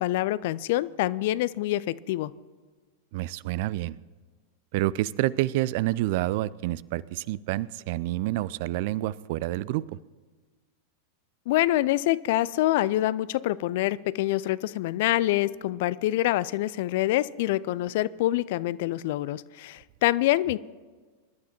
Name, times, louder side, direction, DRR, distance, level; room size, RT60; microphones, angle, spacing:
voice 1, 0.0-2.3 11.5-20.6, left 15 dB, 50° left, 19 dB, 0.3 m, -26 dB
voice 2, 3.1-4.0 4.7-10.0, right 16 dB, 50° right, 21 dB, 0.3 m, -28 dB
25.5 x 11.5 x 3.0 m, 1.4 s
figure-of-eight pair, 90°, 0 cm